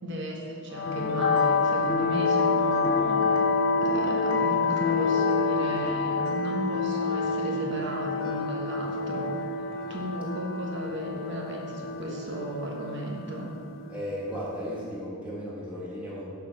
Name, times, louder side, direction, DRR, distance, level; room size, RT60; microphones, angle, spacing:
voice 1, 0.0-3.4 3.8-9.4 9.9-13.5, equal, 55° right, -1 dB, 1.3 m, -35 dB
sound 1, 0.7-14.8, left 4 dB, 65° left, 0.8 m, -27 dB
voice 2, 13.9-16.2, equal, 5° right, -9 dB, 1.7 m, -35 dB
6.8 x 4.9 x 6.6 m, 2.5 s
head